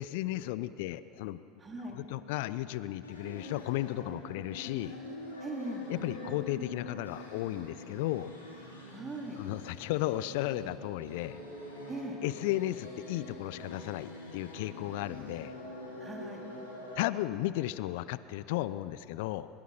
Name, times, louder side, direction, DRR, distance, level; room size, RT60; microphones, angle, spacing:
voice 1, 0.0-1.4 1.9-5.0 5.9-8.3 9.4-11.4 12.2-15.5 17.0-19.5, left 15 dB, 60° left, 15 dB, 0.6 m, -34 dB
voice 2, 1.6-2.0 5.4-5.9 8.9-9.4 11.9-12.2 16.0-16.5, right 2 dB, 20° right, 0 dB, 3.6 m, -40 dB
sound 1, 3.0-17.0, left 1 dB, 85° left, 4.2 m, -45 dB
25.5 x 21.5 x 6.0 m, 2.7 s
figure-of-eight pair, 75°, 0 cm